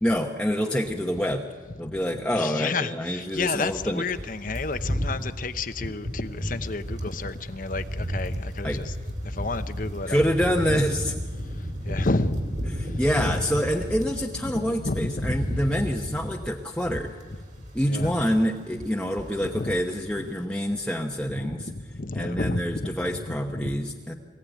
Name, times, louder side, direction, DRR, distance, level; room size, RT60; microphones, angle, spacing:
voice 1, 0.0-1.4 1.8-4.0 8.6-8.8 10.1-11.1 12.7-17.2 17.7-21.7 22.1-24.1, equal, 5° left, 0 dB, 1.0 m, -26 dB
voice 2, 2.3-8.9 9.2-10.3 10.7-10.8 11.8-12.4 13.2-13.4 14.5-15.4 17.9-18.1 19.4-19.8 21.4-21.6 21.9-22.9 23.3-23.7, left 3 dB, 45° left, 10 dB, 1.0 m, -31 dB
sound 1, 3.3-14.3 14.6-18.0 18.3-18.5 18.9-19.7 19.9-20.1, equal, 45° right, 3.2 m, -33 dB
23.5 x 16.5 x 9.2 m, 1.5 s
head